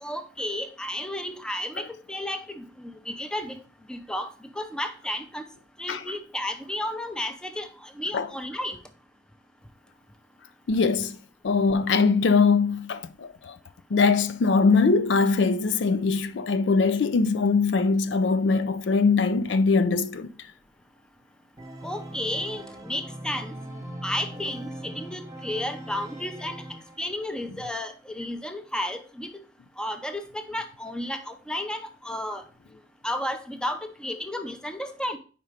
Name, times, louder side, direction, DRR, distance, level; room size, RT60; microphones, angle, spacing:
voice 1, 0.0-3.6 3.9-4.3 4.6-5.4 5.8-8.8 21.8-23.5 24.0-26.6 27.0-29.3 29.8-32.4 33.0-35.2, left 1 dB, 5° left, 0.6 m, -32 dB
voice 2, 10.7-11.2 11.4-13.6 13.9-20.3, left 4 dB, 80° left, 0.4 m, -22 dB
Organ, 21.6-27.3, right 1 dB, 20° right, 1.1 m, -40 dB
5.1 x 4.3 x 4.9 m
head